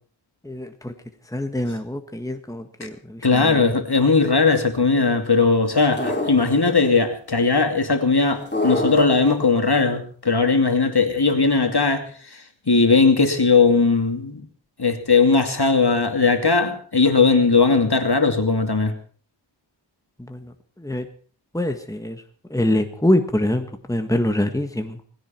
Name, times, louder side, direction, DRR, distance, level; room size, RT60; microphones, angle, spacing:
voice 1, 0.4-0.9 1.2-3.8 20.2-21.1 21.5-22.2 22.5-25.0, left 1 dB, 5° left, 6 dB, 1.7 m, -25 dB
voice 2, 3.2-14.4 14.8-18.9, left 4 dB, 55° left, 6 dB, 2.6 m, -18 dB
sound 1, 6.0-6.9 8.5-9.5, left 2 dB, 25° left, 4.2 m, -25 dB
19.5 x 16.5 x 4.5 m, 0.43 s
wide cardioid pair, 55°, 45 cm